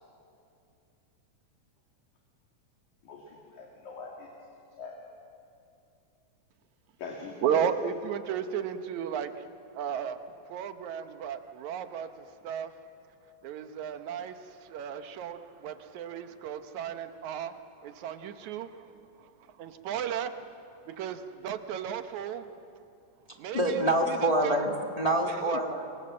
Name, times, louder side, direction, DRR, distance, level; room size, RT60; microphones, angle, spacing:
voice 1, 3.1-4.3 4.8-4.9 7.0-7.7, left 4 dB, 70° left, -1 dB, 3.7 m, -41 dB
voice 2, 7.4-9.5 9.8-10.2 10.5-12.7 13.4-17.5 17.8-18.8 19.2-19.3 19.6-20.3 20.9-22.5 23.4-24.6 25.2-25.6, right 9 dB, 70° right, 9 dB, 2.2 m, -34 dB
voice 3, 23.5-25.9, right 1 dB, 20° left, 1 dB, 1.0 m, -26 dB
25.0 x 24.5 x 7.6 m, 2.6 s
omnidirectional pair, 3.6 m